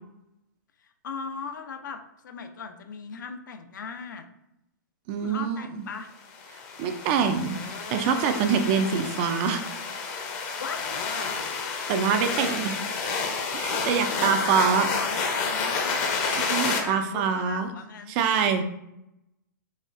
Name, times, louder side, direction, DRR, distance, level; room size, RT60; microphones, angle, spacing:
voice 1, 0.8-4.3 5.2-6.1 10.6-11.4 13.7-18.2 18.4-18.6, left 5 dB, 75° left, 7 dB, 0.5 m, -38 dB
voice 2, 5.1-5.8 6.8-7.6 7.9-9.6 11.9-12.8 13.5-14.9 16.4-17.7 18.1-18.6, right 6 dB, 35° right, 8 dB, 0.4 m, -25 dB
sound 1, 6.3-16.8, left 5 dB, 30° left, 0.6 m, -30 dB
4.1 x 2.4 x 2.5 m, 0.82 s
hypercardioid pair, 140°, 10 cm